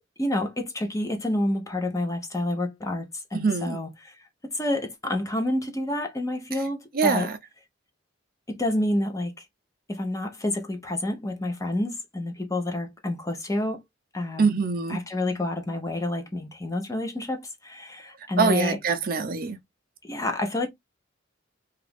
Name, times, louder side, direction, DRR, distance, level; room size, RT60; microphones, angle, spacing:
voice 1, 0.2-4.2 4.4-7.3 8.5-9.5 9.9-13.8 14.1-14.6 14.9-18.8 20.0-20.7, left 1 dB, 15° left, 0.7 m, -29 dB
voice 2, 3.3-3.8 6.9-7.3 14.4-15.0 18.4-19.6, right 5 dB, 50° right, 0.6 m, -24 dB
2.9 x 2.5 x 3.4 m
head